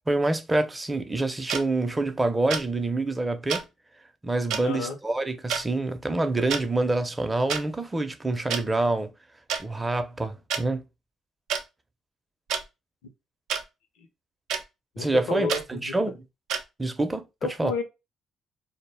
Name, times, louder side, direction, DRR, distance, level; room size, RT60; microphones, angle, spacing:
voice 1, 0.1-3.7 4.2-9.1 9.6-10.8 15.0-16.1 16.8-17.3 17.6-17.7, right 2 dB, 20° right, 0.5 m, -26 dB
sound 1, 1.5-1.6 2.5-2.7 3.5-3.6 4.5-4.6 5.5-5.6 6.4-6.6 7.5-7.6 8.5-8.6 9.5-9.6 10.5-10.6 11.5-11.6 12.5-12.6 13.5-13.6 14.5-14.6 15.5-15.6 16.5-16.6, right 7 dB, 80° right, 0.4 m, -28 dB
voice 2, 4.6-5.0 15.0-15.9 17.4-17.8, left 4 dB, 80° left, 0.6 m, -31 dB
2.1 x 2.0 x 3.2 m
supercardioid pair, 60°, 0 cm